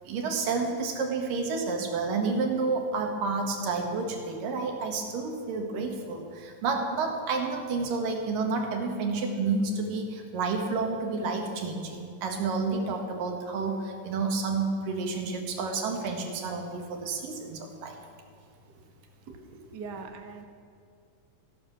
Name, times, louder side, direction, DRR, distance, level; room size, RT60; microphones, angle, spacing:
voice 1, 0.0-18.0, right 4 dB, 80° right, 3 dB, 3.3 m, -30 dB
voice 2, 19.3-20.4, right 4 dB, 50° right, 4 dB, 1.2 m, -42 dB
15.0 x 12.0 x 7.0 m, 2.4 s
omnidirectional pair, 3.9 m